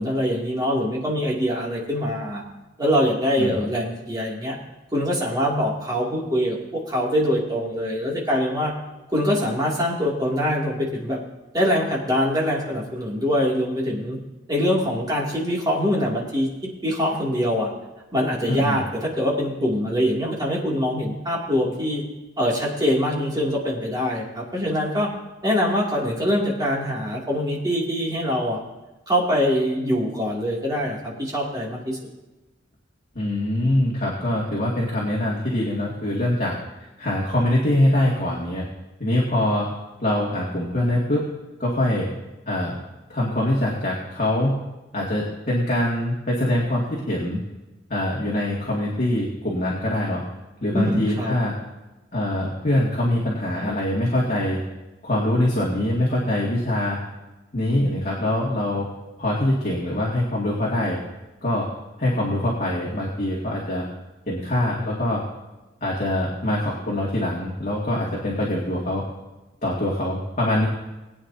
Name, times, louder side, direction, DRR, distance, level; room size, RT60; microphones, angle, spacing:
voice 1, 0.0-2.4 2.8-4.6 4.9-8.7 9.1-11.2 11.5-14.2 14.5-16.5 16.8-17.7 18.1-22.0 22.4-25.1 25.4-28.6 29.1-32.0 50.7-51.4, equal, 20° right, -3 dB, 2.7 m, -23 dB
voice 2, 18.5-18.8 33.2-36.5 37.0-38.6 39.0-39.7 40.0-41.3 41.6-42.1 42.5-42.8 43.1-44.6 44.9-47.4 47.9-50.2 50.6-51.5 52.1-54.6 55.0-57.0 57.5-58.9 59.2-61.0 61.4-61.7 62.0-63.8 64.3-65.2 65.8-69.0 69.6-70.7, left 1 dB, 40° left, -5 dB, 2.3 m, -23 dB
21.0 x 9.0 x 2.8 m, 1.1 s
head